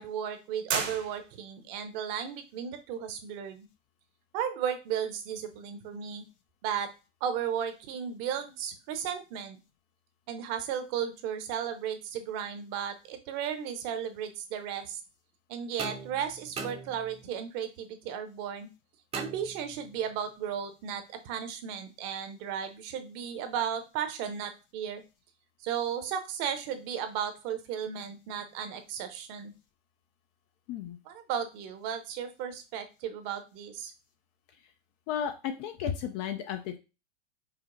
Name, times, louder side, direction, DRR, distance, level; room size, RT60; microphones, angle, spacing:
voice 1, 0.0-3.7 4.3-6.2 6.6-6.9 7.2-9.6 10.3-15.0 15.5-18.7 19.1-25.0 25.6-29.5 31.0-33.9, right 8 dB, 45° right, 8 dB, 0.9 m, -35 dB
sound 1, 0.7-1.7, right 6 dB, 70° right, 1.4 m, -33 dB
sound 2, 15.8-17.4 19.1-20.1, right 3 dB, 15° right, 0.7 m, -41 dB
voice 2, 35.1-36.6, left 9 dB, 35° left, 8 dB, 0.4 m, -33 dB
5.1 x 2.0 x 3.8 m, 0.29 s
hypercardioid pair, 125°, 37 cm